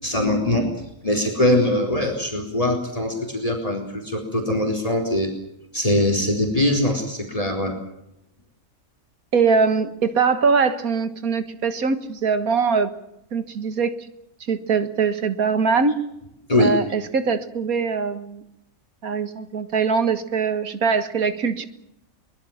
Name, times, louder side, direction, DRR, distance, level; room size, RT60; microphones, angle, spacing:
voice 1, 0.0-5.3 5.7-7.8 16.5-16.8, left 1 dB, 25° left, 3 dB, 4.2 m, -22 dB
voice 2, 9.3-12.9 13.3-14.0 14.5-16.0 16.6-18.4 19.0-21.7, right 5 dB, 90° right, 11 dB, 2.1 m, -22 dB
23.0 x 21.0 x 7.3 m, 0.81 s
omnidirectional pair, 1.5 m